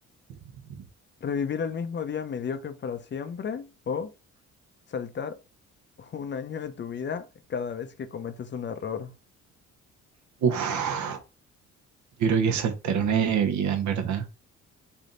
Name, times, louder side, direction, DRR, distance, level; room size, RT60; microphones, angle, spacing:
voice 1, 1.2-4.1 4.9-5.4 6.0-9.1, left 6 dB, 40° left, 0.5 m, -33 dB
voice 2, 10.4-11.2 12.2-14.3, right 7 dB, 70° right, 0.9 m, -25 dB
3.4 x 2.7 x 3.8 m
cardioid pair, 90°, 30 cm